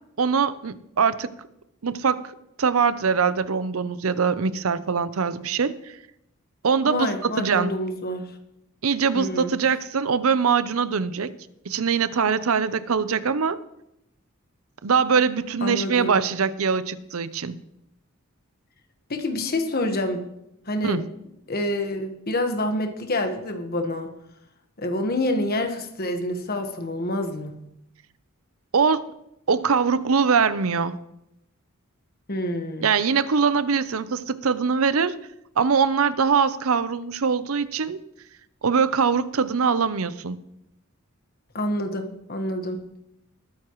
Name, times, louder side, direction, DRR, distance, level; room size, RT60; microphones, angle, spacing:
voice 1, 0.2-1.3 1.8-2.2 2.6-5.9 6.6-7.7 8.8-11.3 11.7-13.6 14.8-17.6 20.8-21.0 28.7-29.1 29.5-30.9 32.8-35.2 35.6-38.0 38.6-40.4, right 5 dB, 75° right, 14 dB, 0.6 m, -22 dB
voice 2, 6.9-8.3 9.1-9.5 15.6-16.2 19.1-20.2 20.7-21.0 21.5-24.1 24.8-27.5 32.3-32.9 41.5-42.8, left 1 dB, 45° left, 5 dB, 1.4 m, -27 dB
20.0 x 9.7 x 3.1 m, 0.83 s
head